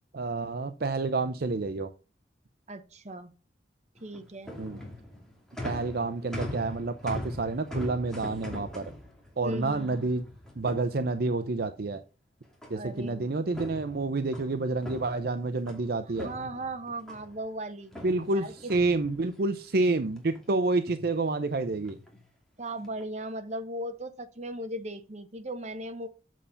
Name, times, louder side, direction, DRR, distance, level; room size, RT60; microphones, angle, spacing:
voice 1, 0.1-1.9 4.6-4.8 5.6-8.8 9.4-10.2 10.6-12.0 12.7-16.3 18.0-22.0, right 3 dB, 60° right, 0.6 m, -29 dB
voice 2, 2.7-3.3 4.0-4.5 9.4-10.1 12.7-13.3 16.2-17.9 18.3-18.7 22.6-26.1, right 1 dB, 40° right, 1.1 m, -37 dB
sound 1, 4.0-11.5 12.6-13.1 13.4-15.8 16.2-17.4 17.9-19.6 20.0-20.5 20.7-21.1 21.9-22.2 22.7-23.0, left 1 dB, 5° left, 2.4 m, -42 dB
7.4 x 6.9 x 5.7 m
head